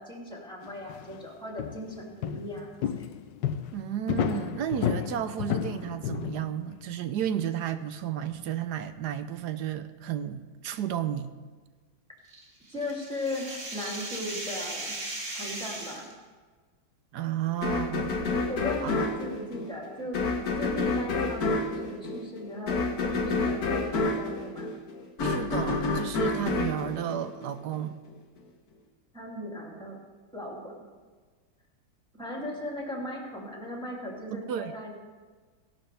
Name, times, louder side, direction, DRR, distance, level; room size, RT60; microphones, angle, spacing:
voice 1, 0.0-2.7 12.7-15.0 15.3-16.1 18.4-20.2 20.6-24.7 29.1-30.0 30.3-30.7 32.1-34.9, left 1 dB, 5° left, -2 dB, 2.6 m, -37 dB
sound 1, 0.6-1.3 1.6-6.7, left 9 dB, 75° left, 1.3 m, -32 dB
voice 2, 3.7-11.3 17.1-18.4 18.8-18.9 25.2-28.0 34.3-34.7, right 10 dB, 70° right, 10 dB, 1.1 m, -32 dB
sound 2, 12.3-16.1, right 2 dB, 35° right, 2.0 m, -37 dB
sound 3, 17.6-27.8, left 3 dB, 60° left, 1.6 m, -29 dB
17.0 x 11.5 x 3.4 m, 1.4 s
omnidirectional pair, 2.0 m